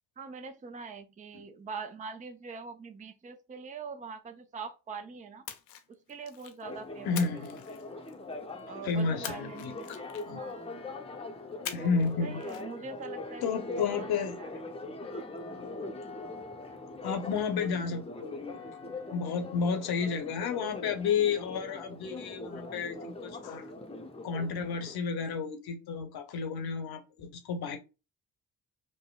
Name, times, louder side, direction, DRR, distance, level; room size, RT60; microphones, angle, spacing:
voice 1, 0.2-5.4 5.9-7.4 8.7-10.0 10.3-10.6 11.8-14.5, right 5 dB, 15° right, 0.5 m, -43 dB
Splash splatter, 5.4-6.6 7.1-8.3 9.2-10.5 11.6-12.1 12.4-12.6, left 10 dB, 80° left, 0.5 m, -43 dB
Church bell, 6.6-25.0, left 2 dB, 15° left, 0.7 m, -41 dB
voice 2, 7.0-7.6 8.8-9.7 10.3-10.4 11.7-12.4 13.4-14.4 17.0-18.6 19.1-23.7 24.2-27.8, left 5 dB, 50° left, 0.9 m, -31 dB
5.3 x 2.1 x 2.3 m
hypercardioid pair, 40°, 47 cm